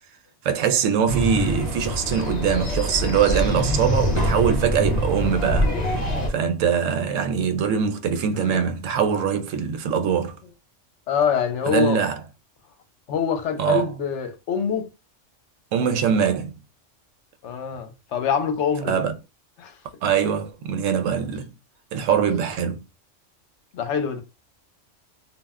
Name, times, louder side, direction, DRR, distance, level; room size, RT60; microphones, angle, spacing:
voice 1, 0.4-10.4 11.7-12.2 13.6-13.9 15.7-16.5 18.9-19.1 20.0-21.5 21.9-22.8, right 7 dB, 90° right, 0.9 m, -23 dB
sound 1, 1.1-6.3, equal, 35° left, 1.0 m, -24 dB
voice 2, 11.1-12.0 13.1-14.9 17.4-19.0 19.6-19.8 23.7-24.2, left 7 dB, 75° left, 0.9 m, -25 dB
2.4 x 2.1 x 3.4 m
omnidirectional pair, 1.3 m